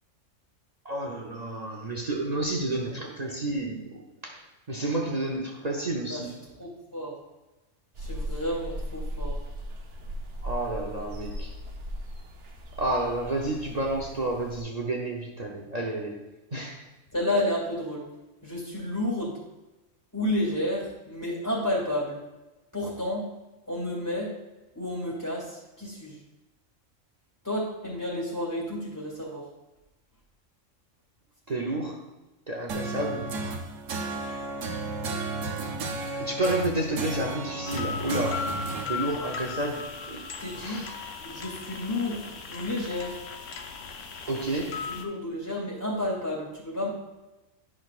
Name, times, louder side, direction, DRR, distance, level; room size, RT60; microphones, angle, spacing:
voice 1, 0.8-4.4 4.7-6.3 10.4-11.5 12.8-16.2 16.5-16.9 31.5-32.0 32.5-33.3 36.1-38.4 38.9-40.3 40.6-40.9 44.3-44.8, right 2 dB, 40° right, 0 dB, 0.8 m, -30 dB
voice 2, 6.1-7.2 8.0-9.4 17.1-18.1 18.4-19.4 20.1-22.2 22.7-23.3 23.7-24.4 24.7-26.2 27.4-29.5 40.4-40.9 41.2-43.2 44.9-46.9, left 1 dB, 15° left, -4 dB, 2.0 m, -31 dB
sound 1, 7.9-14.6, equal, 55° right, 1.0 m, -37 dB
sound 2, 32.7-38.8, right 2 dB, 80° right, 1.2 m, -33 dB
sound 3, 37.6-45.0, left 5 dB, 75° left, 1.1 m, -37 dB
10.5 x 6.1 x 2.4 m, 1.0 s
omnidirectional pair, 1.3 m